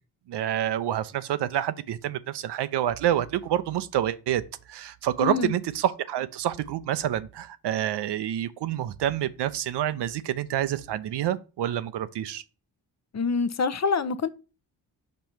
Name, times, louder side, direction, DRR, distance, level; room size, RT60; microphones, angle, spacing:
voice 1, 0.3-4.4 4.7-12.4, right 11 dB, 65° right, 0.7 m, -28 dB
voice 2, 5.2-5.5 13.1-14.3, left 5 dB, 40° left, 0.7 m, -26 dB
5.4 x 5.2 x 4.5 m
supercardioid pair, 45°, 44 cm